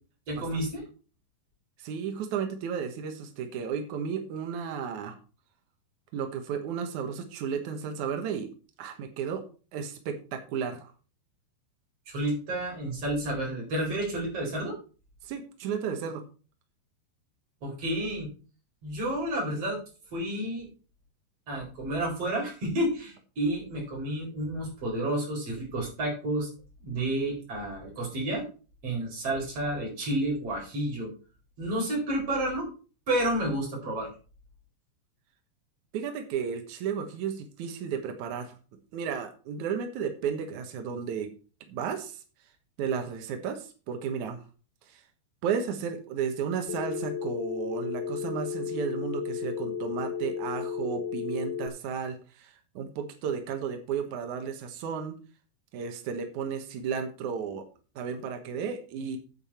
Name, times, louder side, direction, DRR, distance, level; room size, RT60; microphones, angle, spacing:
voice 1, 0.3-0.8 12.1-14.7 17.6-18.3 18.8-19.8 20.1-20.7 21.5-26.5 26.8-28.4 28.8-31.1 31.6-32.7 33.1-34.1, right 1 dB, 35° right, -1 dB, 5.0 m, -30 dB
voice 2, 1.8-5.2 6.1-8.5 8.8-9.4 9.7-10.9 15.2-16.2 35.9-38.6 38.9-41.3 41.7-42.2 42.8-44.4 44.8-45.0 45.4-55.2 55.7-57.6 57.9-59.2, right 7 dB, 80° right, 5 dB, 1.7 m, -33 dB
Telephone, 46.7-51.7, left 7 dB, 75° left, 2.5 m, -33 dB
9.0 x 8.9 x 4.3 m, 0.36 s
omnidirectional pair, 5.3 m